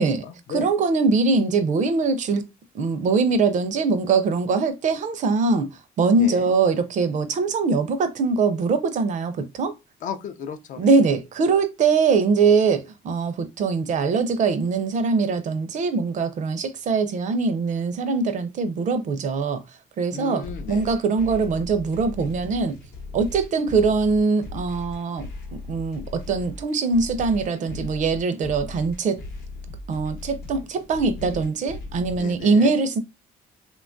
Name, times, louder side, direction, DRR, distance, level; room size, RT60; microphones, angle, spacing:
voice 1, 0.0-0.7 6.2-6.5 10.0-10.9 20.1-20.9 32.1-32.8, left 7 dB, 50° left, 0.4 m, -35 dB
voice 2, 0.5-2.5 2.7-9.7 10.8-19.6 20.0-22.8 23.1-29.2 29.9-33.0, right 4 dB, 45° right, 0.4 m, -22 dB
sound 1, 20.4-32.4, left 3 dB, 65° left, 0.8 m, -38 dB
2.9 x 2.2 x 2.5 m
cardioid pair, 110°, 17 cm